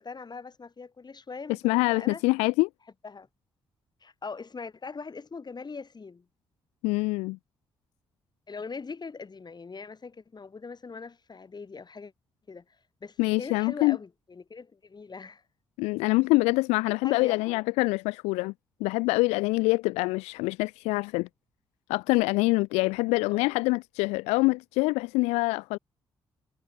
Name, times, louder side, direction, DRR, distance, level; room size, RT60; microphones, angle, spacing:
voice 1, 0.0-2.2 3.0-3.3 4.0-6.3 8.5-12.1 12.5-15.4 17.0-17.7 23.3-23.6, left 4 dB, 40° left, 2.9 m, -41 dB
voice 2, 1.6-2.7 6.8-7.4 13.2-14.0 15.8-18.5 18.8-21.3 21.9-25.8, left 24 dB, 85° left, 0.5 m, -25 dB
hypercardioid pair, 45°, 11 cm